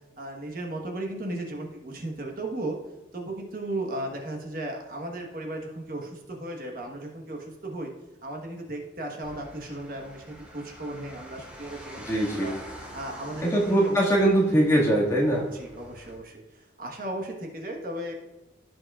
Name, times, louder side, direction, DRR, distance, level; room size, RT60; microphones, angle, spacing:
voice 1, 0.2-2.8 3.1-7.9 8.2-12.0 12.3-12.5 12.9-14.0 15.5-18.1, right 1 dB, 50° right, 1 dB, 1.3 m, -35 dB
sound 1, 9.2-16.1, equal, 5° right, 2.9 m, -46 dB
voice 2, 12.0-12.5 13.4-15.5, right 1 dB, 15° left, -5 dB, 1.9 m, -22 dB
16.0 x 6.0 x 2.4 m, 1.1 s
head